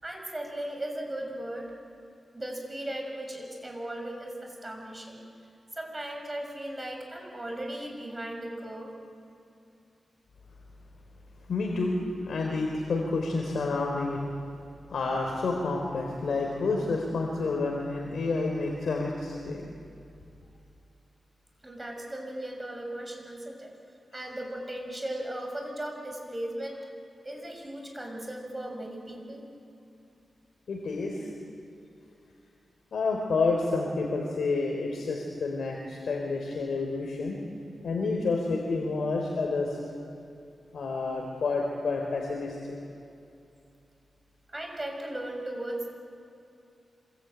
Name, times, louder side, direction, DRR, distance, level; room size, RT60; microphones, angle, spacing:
voice 1, 0.0-1.7 2.3-5.2 5.7-8.9 21.6-23.7 24.1-26.8 27.2-29.4 44.5-45.9, right 1 dB, 20° right, 2 dB, 6.7 m, -37 dB
voice 2, 11.5-12.0 12.3-14.2 14.9-19.6 30.7-31.3 32.9-37.4 37.8-39.8 40.7-42.6, left 3 dB, 75° left, 0 dB, 3.7 m, -29 dB
26.5 x 23.0 x 9.2 m, 2.6 s
cardioid pair, 80°, 0 cm